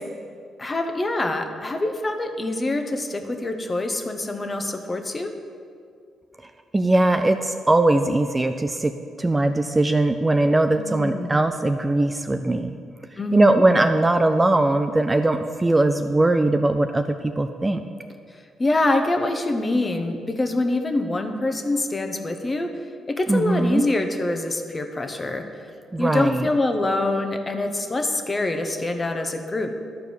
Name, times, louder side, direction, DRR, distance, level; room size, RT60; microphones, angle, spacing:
voice 1, 0.6-5.3 10.7-11.4 13.2-13.6 18.6-22.8 23.1-25.5 26.0-29.7, left 2 dB, 25° left, 6 dB, 0.9 m, -25 dB
voice 2, 6.7-8.9 9.2-12.8 13.3-17.8 23.3-23.8 25.9-26.5, right 2 dB, 15° right, 8 dB, 0.4 m, -20 dB
11.5 x 4.6 x 7.0 m, 2.3 s
cardioid pair, 90°, 0 cm